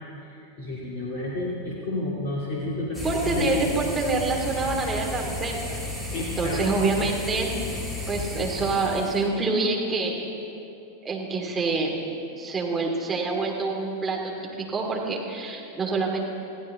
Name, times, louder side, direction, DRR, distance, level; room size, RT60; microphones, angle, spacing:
voice 1, 0.2-3.5 6.1-6.6, left 2 dB, 40° left, -5 dB, 2.7 m, -30 dB
sound 1, 2.9-9.3, left 2 dB, 15° left, 3.2 m, -33 dB
voice 2, 3.0-5.8 6.2-7.6 8.1-10.2 11.0-12.0 12.4-16.2, right 3 dB, 15° right, -1 dB, 2.8 m, -26 dB
21.5 x 15.5 x 3.9 m, 2.8 s
figure-of-eight pair, 90°, 0 cm